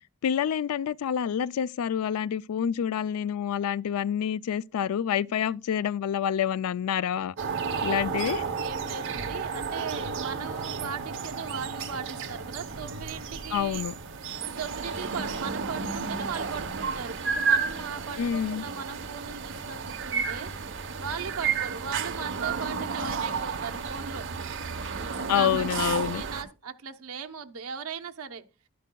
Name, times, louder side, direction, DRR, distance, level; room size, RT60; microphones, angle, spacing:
voice 1, 0.2-7.3 7.8-8.4 13.5-13.9 18.2-18.6 25.3-26.2, left 8 dB, 85° left, 0.3 m, -27 dB
sound 1, 7.4-26.4, right 5 dB, 60° right, 0.9 m, -32 dB
voice 2, 7.5-13.8 14.4-20.5 21.0-24.3 25.1-28.4, right 6 dB, 80° right, 0.8 m, -38 dB
11.5 x 11.0 x 2.3 m
head